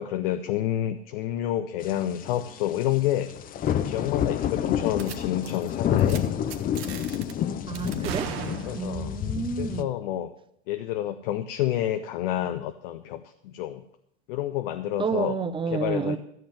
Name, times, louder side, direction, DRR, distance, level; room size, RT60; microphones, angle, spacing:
voice 1, 0.0-3.3 3.8-6.3 7.3-7.6 8.7-9.2 9.6-10.3 10.7-13.8 14.3-15.3 15.7-16.2, left 12 dB, 60° left, 9 dB, 0.8 m, -29 dB
goog rain and thunder, 1.8-9.8, left 10 dB, 25° left, 0.6 m, -29 dB
sound 1, 5.0-5.2 5.4-5.7 6.0-6.2 6.5-7.3 7.7-9.1, right 9 dB, 65° right, 1.4 m, -36 dB
voice 2, 7.7-8.3 8.7-9.9 15.0-16.2, right 5 dB, 15° right, 13 dB, 0.7 m, -29 dB
14.0 x 7.1 x 7.2 m, 0.74 s
hypercardioid pair, 100°, 33 cm